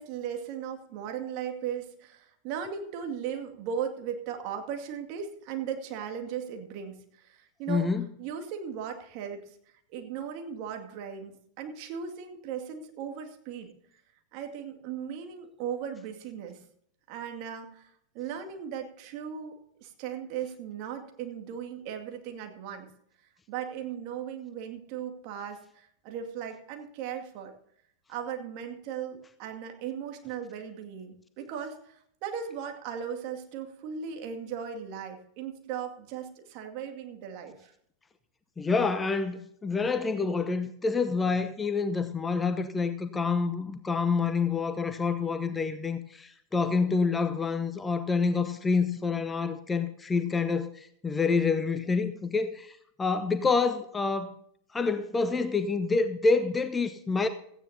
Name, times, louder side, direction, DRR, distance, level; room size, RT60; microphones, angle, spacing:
voice 1, 0.0-7.9 8.2-9.6 9.9-14.0 14.3-16.6 17.1-22.9 23.5-27.5 28.1-37.7, right 8 dB, 45° right, 2.2 m, -37 dB
voice 2, 7.7-8.1 38.6-54.3 54.7-57.3, left 4 dB, 15° left, 0.8 m, -27 dB
17.0 x 15.0 x 2.8 m
figure-of-eight pair, 90°, 0 cm